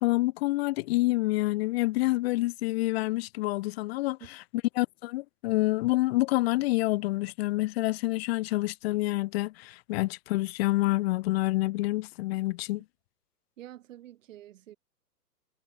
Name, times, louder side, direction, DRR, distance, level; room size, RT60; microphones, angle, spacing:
voice 1, 0.0-4.2 4.7-12.8, left 19 dB, 40° left, 2.6 m, -27 dB
voice 2, 4.0-4.3 13.6-14.8, right 13 dB, 50° right, 7.0 m, -48 dB
hypercardioid pair, 130°, 48 cm